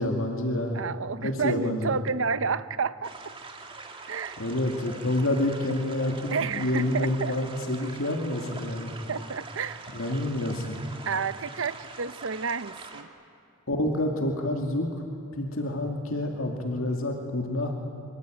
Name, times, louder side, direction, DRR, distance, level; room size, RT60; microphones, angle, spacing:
voice 1, 0.0-0.8 1.2-2.0 4.4-8.9 9.9-10.8 13.7-15.0 15.4-17.8, left 1 dB, 75° left, 1 dB, 2.4 m, -28 dB
voice 2, 0.7-3.1 4.1-4.4 6.3-7.3 9.1-9.8 11.1-13.1, right 5 dB, 65° right, 14 dB, 0.8 m, -30 dB
sound 1, 3.0-13.0, right 3 dB, 25° right, 2.2 m, -44 dB
25.0 x 24.0 x 9.2 m, 2.6 s
head